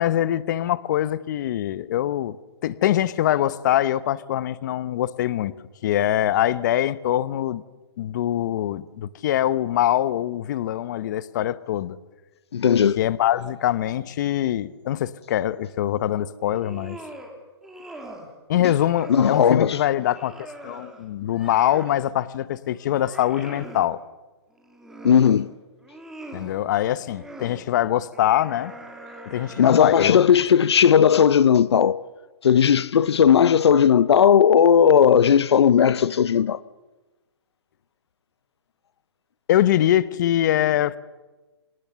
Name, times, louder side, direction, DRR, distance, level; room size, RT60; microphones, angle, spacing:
voice 1, 0.0-2.4 2.6-5.5 5.8-7.6 8.0-12.0 13.0-17.0 18.5-24.0 26.3-28.7 29.3-30.2 39.5-41.0, left 12 dB, 45° left, 0.9 m, -23 dB
voice 2, 12.5-13.0 18.6-18.7 19.1-19.8 25.0-25.5 29.6-32.0 32.4-36.6, left 8 dB, 75° left, 0.7 m, -17 dB
sound 1, 16.4-17.3 17.6-18.3 18.7-19.5 20.0-22.0 22.5-23.9 24.5-25.4 25.8-26.5 27.0-27.6 28.1-30.3, right 1 dB, 5° right, 2.7 m, -42 dB
25.5 x 20.5 x 7.0 m
hypercardioid pair, 155°, 14 cm